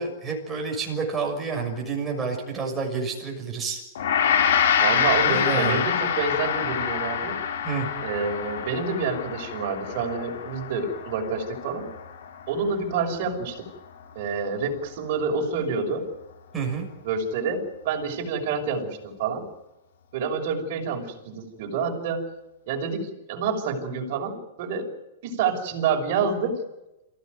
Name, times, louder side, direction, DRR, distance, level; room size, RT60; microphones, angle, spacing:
voice 1, 0.0-3.8 5.2-5.8 7.6-7.9 16.5-16.9, right 5 dB, 10° right, 0 dB, 6.5 m, -29 dB
Gong, 3.9-13.3, left 8 dB, 65° left, 3.5 m, -26 dB
voice 2, 4.8-7.4 8.0-11.9 12.5-13.7 14.1-16.1 17.0-19.4 20.1-22.3 22.7-24.9 25.2-26.6, right 5 dB, 45° right, 2 dB, 5.8 m, -28 dB
27.5 x 16.0 x 9.4 m, 0.96 s
hypercardioid pair, 165°, 0 cm